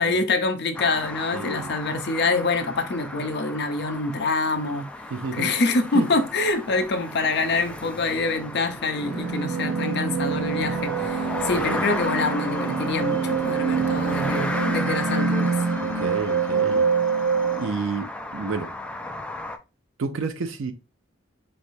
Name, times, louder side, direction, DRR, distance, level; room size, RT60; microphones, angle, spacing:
voice 1, 0.0-4.9 5.3-15.5, left 3 dB, 60° left, 0.6 m, -25 dB
sound 1, 0.7-19.6, left 1 dB, 5° left, 0.3 m, -35 dB
voice 2, 1.3-1.7 5.1-5.5 5.9-6.1 11.5-11.8 16.0-16.9 17.5-18.7 20.0-20.7, right 4 dB, 85° right, 0.5 m, -30 dB
sound 2, 9.0-17.7, right 5 dB, 65° right, 0.8 m, -25 dB
4.1 x 3.2 x 2.7 m
head